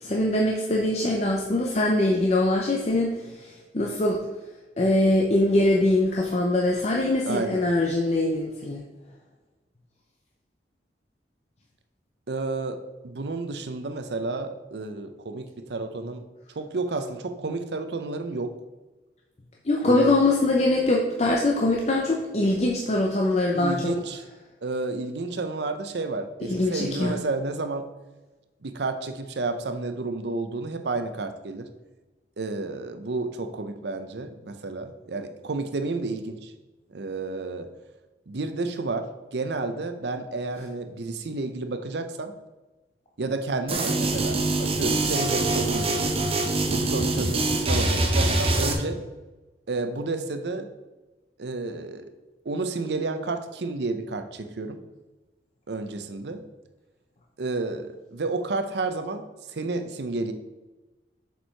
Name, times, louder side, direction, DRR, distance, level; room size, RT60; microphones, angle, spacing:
voice 1, 0.0-4.2 4.8-8.8 19.7-23.9 26.5-27.2, left 2 dB, 40° left, -1 dB, 0.6 m, -23 dB
voice 2, 7.3-7.7 12.3-12.8 13.0-16.2 16.6-18.5 19.8-20.2 23.5-24.2 24.6-27.9 28.6-31.7 32.4-36.5 36.9-37.7 38.3-39.1 39.3-42.3 43.2-46.2 46.7-49.0 49.7-50.7 51.4-52.1 52.4-54.8 55.7-56.4 57.4-60.3, right 3 dB, 70° right, 8 dB, 0.6 m, -31 dB
sound 1, 43.7-48.7, right 2 dB, 35° right, 0.9 m, -24 dB
7.0 x 4.6 x 4.5 m, 1.2 s
head